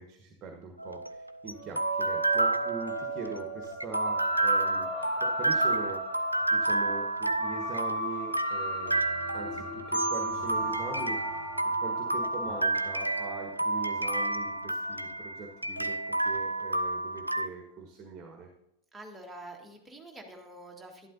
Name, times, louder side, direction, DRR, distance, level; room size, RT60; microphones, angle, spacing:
voice 1, 0.0-4.9 5.2-9.0 9.3-11.4 11.8-18.5, right 4 dB, 30° right, 3 dB, 1.4 m, -42 dB
sound 1, 0.8-17.5, right 2 dB, 85° right, 0.4 m, -30 dB
sound 2, 1.5-16.3, right 1 dB, 25° left, 3.5 m, -40 dB
Marimba xylophone, 9.9-12.8, equal, 70° left, 2.2 m, -42 dB
voice 2, 18.9-21.1, right 1 dB, 5° right, 0 dB, 1.8 m, -46 dB
11.5 x 11.5 x 2.8 m, 0.82 s
figure-of-eight pair, 90°, 0 cm